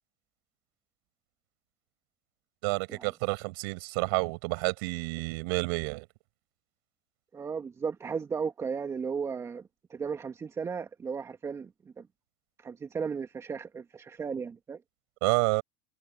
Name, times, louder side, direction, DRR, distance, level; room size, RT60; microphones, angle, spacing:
voice 1, 2.6-6.0 15.2-15.6, right 29 dB, 65° right, 6.9 m, -29 dB
voice 2, 7.3-9.6 9.9-11.7 12.0-12.1 12.6-14.8, right 6 dB, 20° right, 2.0 m, -35 dB
supercardioid pair, 120°, 13 cm